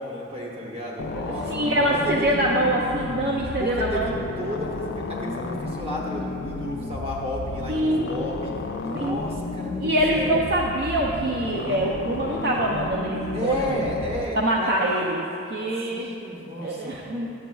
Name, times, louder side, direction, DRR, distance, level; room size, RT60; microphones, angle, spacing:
voice 1, 0.0-1.5 1.9-2.4 3.6-8.5 8.8-10.4 13.3-14.9 15.9-17.0, left 1 dB, 30° right, -3 dB, 1.0 m, -32 dB
sound 1, 1.0-14.3, left 3 dB, 55° left, 0.3 m, -33 dB
voice 2, 1.5-4.1 7.7-8.1 8.9-9.2 9.8-13.5 14.3-15.2 15.5-16.1 16.6-17.3, right 1 dB, 55° right, -2 dB, 0.5 m, -24 dB
10.0 x 7.4 x 2.3 m, 2.8 s
head